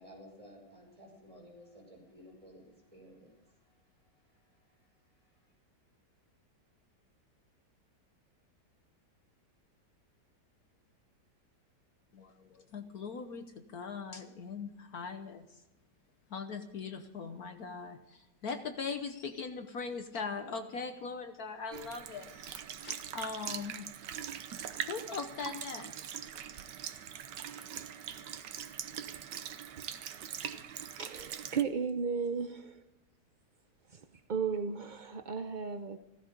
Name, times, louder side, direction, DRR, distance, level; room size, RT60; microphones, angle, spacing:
voice 1, 0.0-5.5, equal, 20° right, -1 dB, 6.1 m, -56 dB
voice 2, 12.1-15.6 16.3-23.9 24.8-26.3, left 5 dB, 65° left, 7 dB, 1.4 m, -41 dB
Sink (filling or washing) / Liquid, 21.7-31.6, right 9 dB, 85° right, 1.5 m, -42 dB
voice 3, 31.0-32.8 33.9-36.0, right 6 dB, 55° right, 7 dB, 0.5 m, -35 dB
16.0 x 14.5 x 5.2 m, 0.92 s
omnidirectional pair, 1.9 m